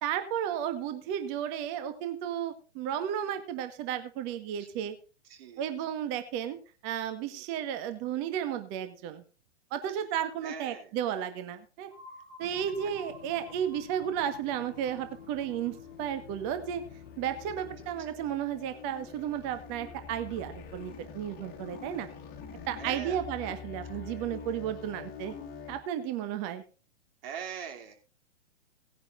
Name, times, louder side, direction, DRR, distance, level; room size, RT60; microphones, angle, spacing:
voice 1, 0.0-4.9 5.6-6.6 6.8-9.2 9.7-11.9 12.4-16.8 17.2-22.1 22.7-25.3 25.7-26.6, right 9 dB, 35° right, 9 dB, 1.5 m, -33 dB
voice 2, 5.2-5.7 7.3-7.7 10.4-10.9 18.1-18.3 22.8-23.2 23.5-23.6 24.0-24.3 27.2-27.9, right 8 dB, 50° right, 2 dB, 3.2 m, -43 dB
sound 1, 11.9-17.6, left 2 dB, 75° right, 4.8 m, -53 dB
sound 2, 12.4-17.9, left 7 dB, 85° left, 1.4 m, -50 dB
sound 3, 14.4-25.8, left 6 dB, 25° left, 1.8 m, -46 dB
18.0 x 10.0 x 2.6 m, 0.36 s
figure-of-eight pair, 115°, 36 cm